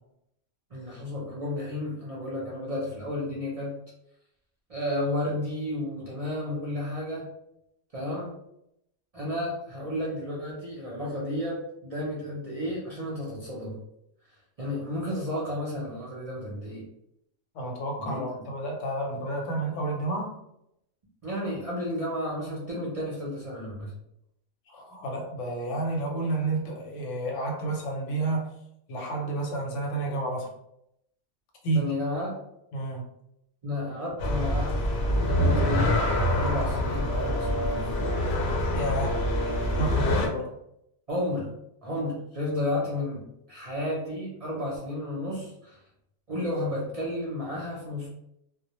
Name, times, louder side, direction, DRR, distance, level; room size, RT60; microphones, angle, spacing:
voice 1, 0.7-3.8 4.7-7.3 7.9-8.3 9.1-13.8 14.6-16.8 18.0-18.2 21.2-23.9 31.7-32.3 33.6-34.9 35.3-36.0 36.3-38.0 41.1-41.5 41.8-45.8 46.3-48.1, left 1 dB, 45° right, -5 dB, 0.5 m, -32 dB
voice 2, 17.5-20.4 24.7-28.5 28.9-30.5 31.6-31.9 32.7-33.0 38.7-39.2 39.7-40.5, right 2 dB, 90° left, 1 dB, 1.0 m, -30 dB
sound 1, 34.2-40.3, left 1 dB, 65° left, 0.8 m, -25 dB
2.1 x 2.0 x 2.8 m, 0.79 s
omnidirectional pair, 1.2 m